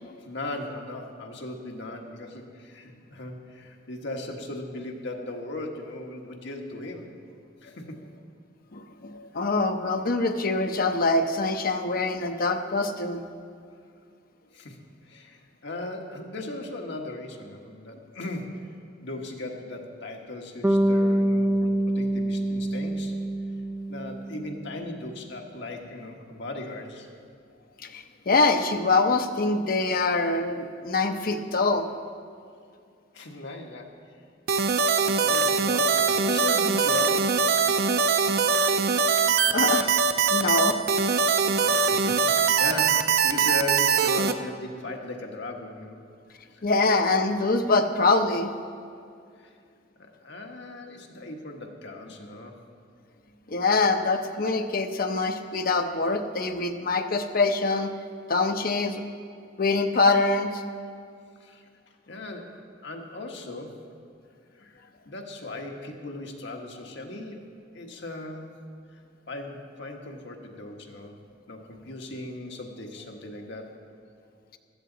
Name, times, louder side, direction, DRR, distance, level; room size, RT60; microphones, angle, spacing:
voice 1, 0.2-7.1 7.6-8.1 14.5-14.8 15.1-18.7 19.0-23.1 23.9-27.1 33.1-33.9 35.2-37.4 41.6-46.0 46.5-46.6 49.4-49.5 50.0-52.6 61.4-61.6 62.1-63.8 64.5-67.5 67.7-68.5 68.9-69.0 69.3-71.2 71.5-73.8, left 2 dB, 65° left, 1 dB, 1.4 m, -37 dB
voice 2, 8.7-13.2 27.8-31.9 39.5-39.9 40.3-40.8 46.6-48.5 53.5-57.9 58.3-59.0 59.6-60.6, left 3 dB, 50° left, 6 dB, 0.8 m, -24 dB
Bass guitar, 20.6-24.8, right 1 dB, 10° right, 0.4 m, -25 dB
sound 1, 34.5-44.3, right 5 dB, 55° right, 0.5 m, -22 dB
15.5 x 13.0 x 4.0 m, 2.3 s
head